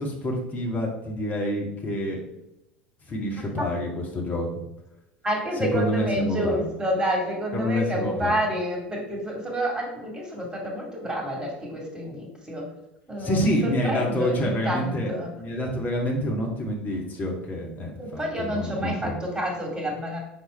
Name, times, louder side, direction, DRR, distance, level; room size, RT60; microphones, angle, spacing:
voice 1, 0.0-2.2 3.1-4.5 5.6-6.6 7.5-8.4 13.2-19.1, equal, 30° left, 0 dB, 1.8 m, -27 dB
voice 2, 5.2-12.7 13.1-15.3 18.0-20.2, equal, 15° right, 0 dB, 2.2 m, -29 dB
5.6 x 4.3 x 4.3 m, 0.92 s
figure-of-eight pair, 75°, 5 cm